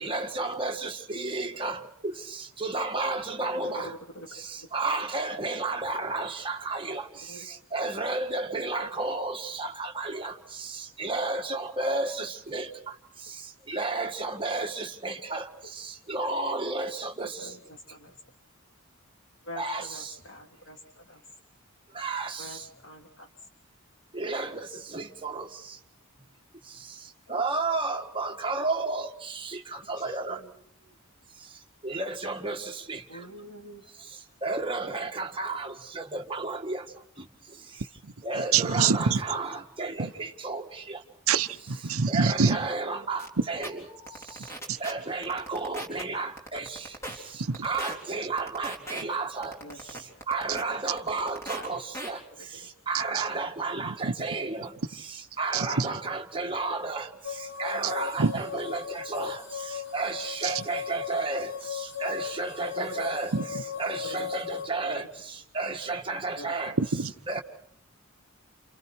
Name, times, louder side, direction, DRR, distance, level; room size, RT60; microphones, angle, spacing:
voice 1, 0.0-1.8 2.6-3.9 4.7-7.0 7.7-10.3 11.0-12.3 12.5-12.7 13.7-15.4 16.1-17.3 19.6-19.8 22.0-22.3 24.2-24.5 24.9-25.4 27.3-29.1 29.9-30.4 31.8-32.6 32.9-33.0 34.4-35.7 36.1-36.8 38.3-40.1 40.4-40.6 42.1-43.2 43.5-43.7 44.8-46.6 47.6-49.5 50.3-51.8 52.1-52.2 52.9-54.7 55.4-57.0 57.6-58.8 59.1-59.4 59.9-61.5 62.0-63.3 63.8-65.0 65.6-66.7 67.3-67.4, right 3 dB, 25° right, 1.8 m, -31 dB
voice 2, 3.5-4.3 7.3-7.5 17.4-18.1 19.4-21.2 22.4-23.3 27.3-27.4 29.9-30.5 30.8-30.9 33.1-33.8 42.6-43.1 47.1-47.2 49.6-50.0 51.5-51.8 56.8-56.9 62.7-63.2 63.5-63.6 64.1-64.3 64.8-65.1 66.4-66.8, equal, 65° left, 3.3 m, -45 dB
voice 3, 38.5-39.2 40.0-40.1 41.3-42.6 47.5-47.6 55.5-55.9 58.2-58.3 63.3-63.4 66.9-67.1, right 5 dB, 90° right, 0.9 m, -24 dB
sound 1, 43.2-43.3 43.6-43.7 44.1-44.9 45.2-46.0 46.4-47.2 47.5-47.9 48.4-49.0 49.4-50.6 51.0-51.7 51.9-52.1, right 1 dB, 15° left, 3.8 m, -37 dB
sound 2, 57.2-64.7, left 8 dB, 85° left, 5.2 m, -37 dB
29.5 x 29.0 x 4.6 m
head